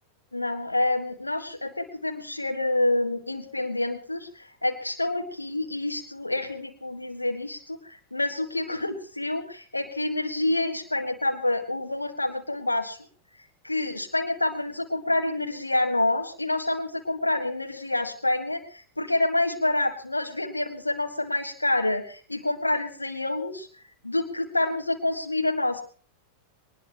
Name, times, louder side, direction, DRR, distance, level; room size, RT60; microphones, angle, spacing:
voice 1, 0.3-13.0 13.6-23.7 24.0-25.8, left 2 dB, 85° left, 4 dB, 1.7 m, -27 dB
22.0 x 20.0 x 3.0 m, 0.43 s
figure-of-eight pair, 90°, 0 cm